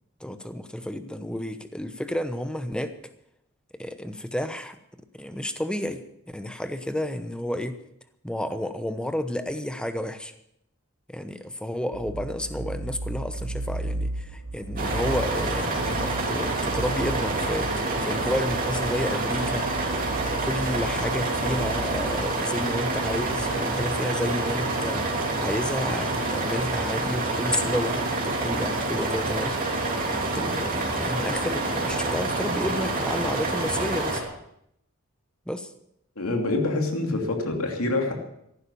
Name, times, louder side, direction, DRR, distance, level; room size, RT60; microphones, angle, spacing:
voice 1, 0.2-3.0 3.8-4.8 5.1-6.0 6.3-7.8 8.2-10.3 11.1-19.6 20.4-29.6 30.2-34.3 35.5-35.7, left 1 dB, 5° left, 10 dB, 0.9 m, -31 dB
sound 1, 11.9-23.6, right 1 dB, 70° right, 0.8 m, -36 dB
sound 2, 14.8-34.2, right 2 dB, 40° right, 3.2 m, -27 dB
voice 2, 36.2-38.1, left 2 dB, 80° left, 2 dB, 2.8 m, -26 dB
15.0 x 11.5 x 6.9 m, 0.78 s
head